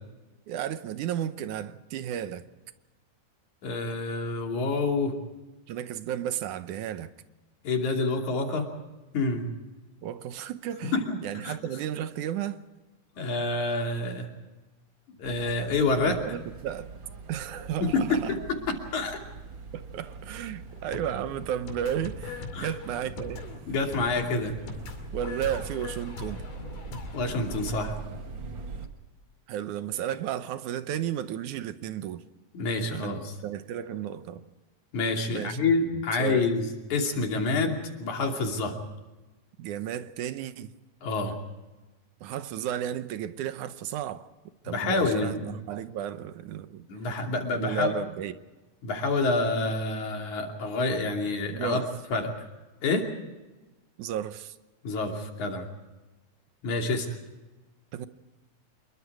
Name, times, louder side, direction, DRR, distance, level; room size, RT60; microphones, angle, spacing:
voice 1, 0.5-2.5 5.7-7.1 10.0-11.0 11.2-12.6 16.1-16.9 17.3-18.3 19.7-23.4 25.1-26.4 29.5-32.2 32.9-34.4 35.3-35.6 36.2-36.5 39.6-40.7 42.2-44.3 44.6-46.9 47.5-48.3 51.5-51.9 54.0-54.6 57.9-58.1, right 10 dB, 80° right, 2.4 m, -33 dB
voice 2, 3.6-5.1 7.6-8.7 9.1-9.4 10.9-11.2 11.4-11.6 13.2-14.3 15.2-16.2 17.8-18.4 18.7-19.2 22.5-22.7 23.7-24.5 27.1-28.0 32.5-33.3 34.9-38.8 41.0-41.3 44.6-45.5 46.9-47.9 48.8-51.8 52.1-52.5 52.8-53.1 54.8-55.7 56.6-57.1, left 3 dB, 75° left, 4.2 m, -27 dB
sound 1, 15.2-28.9, right 4 dB, 45° right, 1.9 m, -42 dB
sound 2, 20.6-27.7, left 4 dB, 90° left, 4.1 m, -41 dB
26.5 x 22.5 x 4.8 m
omnidirectional pair, 3.5 m